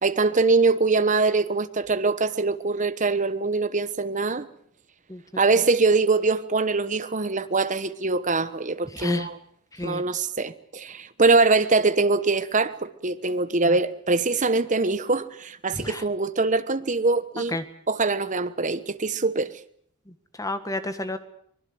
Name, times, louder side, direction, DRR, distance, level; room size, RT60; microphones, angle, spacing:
voice 1, 0.0-4.5 5.4-9.4 9.8-17.6 17.9-19.5, right 3 dB, 35° right, 1.1 m, -23 dB
voice 2, 8.9-9.3 9.7-10.0 13.6-13.8 15.7-16.0 17.5-17.6 20.1-21.2, left 1 dB, 15° left, 1.6 m, -31 dB
24.0 x 21.0 x 7.9 m
head